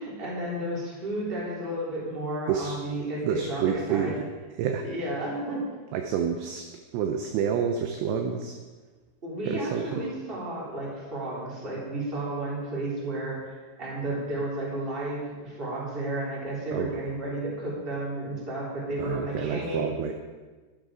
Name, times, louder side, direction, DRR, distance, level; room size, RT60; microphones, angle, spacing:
voice 1, 0.0-4.1 4.8-5.6 9.2-19.9, right 1 dB, 15° right, -6 dB, 2.9 m, -32 dB
voice 2, 3.2-4.2 4.6-4.9 5.9-6.7 6.9-8.6 9.5-10.0 16.7-17.0 19.0-20.1, right 7 dB, 80° right, 5 dB, 2.5 m, -28 dB
12.5 x 11.5 x 5.0 m, 1.3 s
omnidirectional pair, 5.8 m